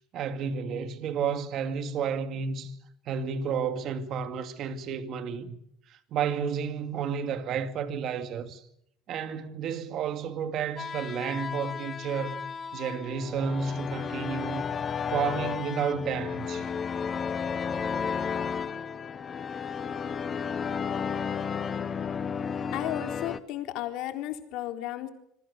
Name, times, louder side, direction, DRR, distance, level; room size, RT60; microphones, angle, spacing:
voice 1, 0.1-2.8 3.1-5.6 5.9-8.6 9.1-12.5 12.7-14.7 15.1-16.7, right 6 dB, 45° right, 2.3 m, -31 dB
sound 1, 10.8-23.4, left 6 dB, 25° left, 1.1 m, -33 dB
voice 2, 22.7-25.1, left 13 dB, 55° left, 3.9 m, -34 dB
26.5 x 23.0 x 6.7 m
cardioid pair, 155°, 0 cm